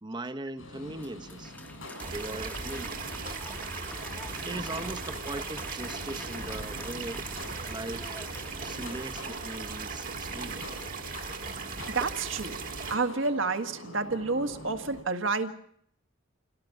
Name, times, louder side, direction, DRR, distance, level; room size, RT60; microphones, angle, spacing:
voice 1, 0.0-1.5 2.1-3.0 4.4-7.2 7.5-8.2 8.6-10.8, right 2 dB, 25° right, 0.9 m, -39 dB
sound 1, 0.6-15.0, left 1 dB, 85° left, 7.3 m, -45 dB
Applause, 0.8-10.3, left 1 dB, 10° left, 1.1 m, -47 dB
sound 2, 2.0-13.0, right 4 dB, 45° right, 1.5 m, -38 dB
voice 2, 11.9-12.6 12.9-15.5, right 3 dB, 70° right, 1.7 m, -29 dB
27.5 x 17.5 x 6.0 m
head